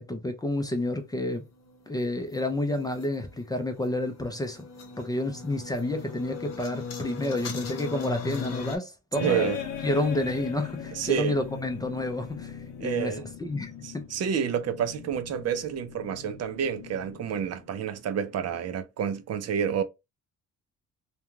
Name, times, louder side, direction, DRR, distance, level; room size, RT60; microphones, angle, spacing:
voice 1, 0.0-1.4 1.9-4.7 5.0-9.6 9.8-13.1 13.4-14.0, left 1 dB, 10° left, 0.4 m, -30 dB
sound 1, 0.8-8.8, left 5 dB, 50° left, 0.9 m, -39 dB
sound 2, 9.1-18.0, left 7 dB, 90° left, 0.8 m, -40 dB
voice 2, 9.2-9.6 11.0-11.4 12.8-13.2 13.8-19.8, right 8 dB, 50° right, 0.4 m, -29 dB
2.4 x 2.2 x 3.0 m
cardioid pair, 120°, 32 cm